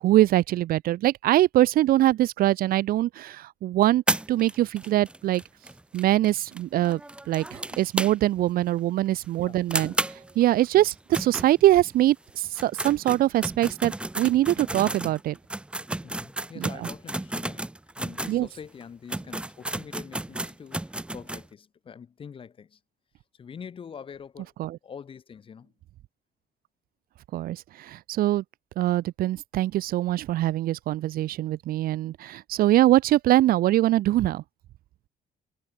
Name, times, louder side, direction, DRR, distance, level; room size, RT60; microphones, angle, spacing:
voice 1, 0.0-4.0 4.3-5.4 5.9-7.0 7.3-9.9 10.4-15.4 16.6-16.9 18.3-18.5 24.6-24.8 27.3-28.4 28.8-34.4, right 14 dB, 70° right, 0.7 m, -23 dB
sound 1, 4.1-8.5 8.8-8.9 9.2-9.3 9.7-12.0 12.4-18.4 18.8-18.9 19.1-21.5, right 1 dB, 5° right, 0.8 m, -33 dB
voice 2, 9.4-9.9 10.7-10.9 16.0-17.6 18.0-22.8 23.3-24.5 24.8-25.7, left 7 dB, 35° left, 2.9 m, -44 dB
cardioid pair, 160°, 16 cm